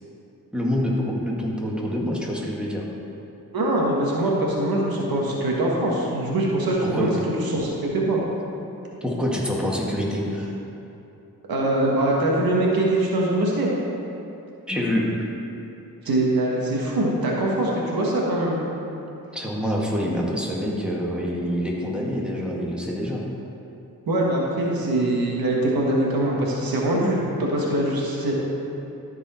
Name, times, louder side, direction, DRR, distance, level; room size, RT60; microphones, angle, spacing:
voice 1, 0.5-2.9 6.8-7.1 9.0-10.5 14.7-15.3 19.3-23.2, equal, 5° right, -4 dB, 2.0 m, -26 dB
voice 2, 3.5-7.1 7.4-8.2 11.5-13.7 16.0-18.6 24.1-28.3, right 1 dB, 85° right, -3 dB, 1.5 m, -23 dB
13.5 x 4.7 x 4.3 m, 2.8 s
cardioid pair, 50°, 35 cm